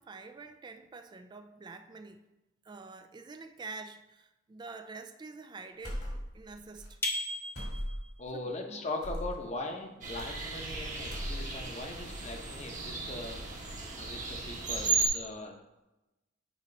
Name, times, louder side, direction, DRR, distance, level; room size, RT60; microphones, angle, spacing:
voice 1, 0.0-2.2 2.6-7.0 8.3-8.9, right 3 dB, 25° right, 7 dB, 0.4 m, -47 dB
sound 1, 5.8-6.5 6.8-6.9 7.5-8.2 9.0-9.4 10.2-10.7 11.0-11.7, equal, 65° left, 2.1 m, -37 dB
sound 2, 7.0-8.1, left 1 dB, 15° left, 0.7 m, -35 dB
voice 2, 8.2-15.6, left 2 dB, 40° left, 3 dB, 0.9 m, -40 dB
sound 3, 10.0-15.1, right 4 dB, 45° right, 1.1 m, -35 dB
8.1 x 3.0 x 5.2 m, 1.0 s
head